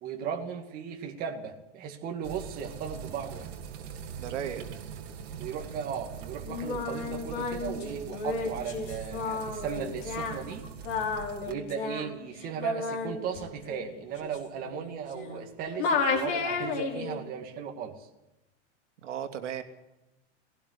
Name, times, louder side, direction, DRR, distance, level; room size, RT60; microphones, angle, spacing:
voice 1, 0.0-3.5 5.4-10.7 11.5-18.1, right 7 dB, 25° right, 2 dB, 2.3 m, -36 dB
sound 1, 2.2-11.5, right 7 dB, 60° right, 2.9 m, -42 dB
voice 2, 4.2-4.8 19.0-19.6, right 9 dB, 75° right, 6 dB, 2.7 m, -35 dB
Singing, 6.5-15.5 15.8-17.2, left 4 dB, 45° left, 5.6 m, -33 dB
19.5 x 18.0 x 8.3 m, 0.95 s
supercardioid pair, 165°, 36 cm